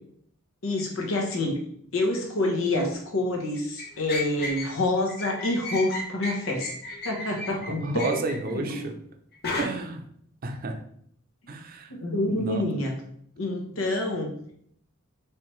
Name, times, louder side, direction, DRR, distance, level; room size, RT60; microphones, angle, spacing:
voice 1, 0.6-1.6 1.9-6.7 7.0-8.2 8.5-8.9 11.9-12.9 13.4-14.3, left 2 dB, 75° left, 2 dB, 1.0 m, -27 dB
sound 1, 3.8-4.7 5.1-8.5 9.4-9.6, left 2 dB, 50° left, 0.9 m, -34 dB
voice 2, 7.5-9.0 9.6-10.0 10.4-10.8 11.5-11.9 12.3-12.6, right 3 dB, 45° right, 4 dB, 0.6 m, -31 dB
4.5 x 3.3 x 3.2 m, 0.66 s
head